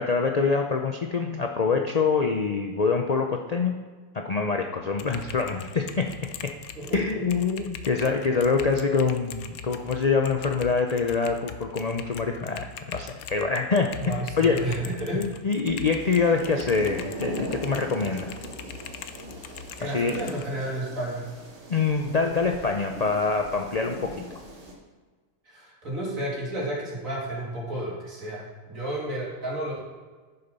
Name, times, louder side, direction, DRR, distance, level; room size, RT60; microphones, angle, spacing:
voice 1, 0.0-3.8 4.1-6.1 6.4-6.5 6.9-14.0 14.4-14.7 15.1-18.3 19.8-20.1 21.7-24.4, left 4 dB, 55° left, 3 dB, 0.4 m, -25 dB
Typing, 4.9-20.5, left 6 dB, 85° left, 1.1 m, -42 dB
voice 2, 6.8-7.7 9.8-9.9 14.0-15.2 19.8-21.2 25.5-29.8, right 1 dB, 70° right, -4 dB, 3.1 m, -32 dB
sound 1, 16.0-24.7, right 1 dB, 50° right, 1.8 m, -39 dB
9.7 x 6.8 x 5.4 m, 1.4 s
omnidirectional pair, 1.5 m